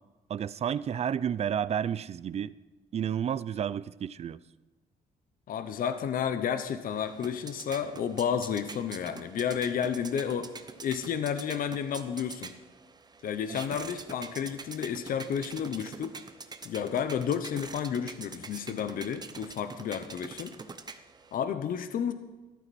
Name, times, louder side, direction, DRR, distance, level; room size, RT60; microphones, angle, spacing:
voice 1, 0.3-2.5 2.9-4.4, right 8 dB, 40° right, 18 dB, 0.4 m, -31 dB
voice 2, 5.5-10.5 10.8-12.5 13.2-16.2 16.6-20.5 21.3-22.1, left 8 dB, 65° left, 10 dB, 0.9 m, -31 dB
sound 1, 6.9-21.4, right 4 dB, 25° right, 0.8 m, -45 dB
14.0 x 12.0 x 4.2 m, 1.2 s
cardioid pair, 105°, 16 cm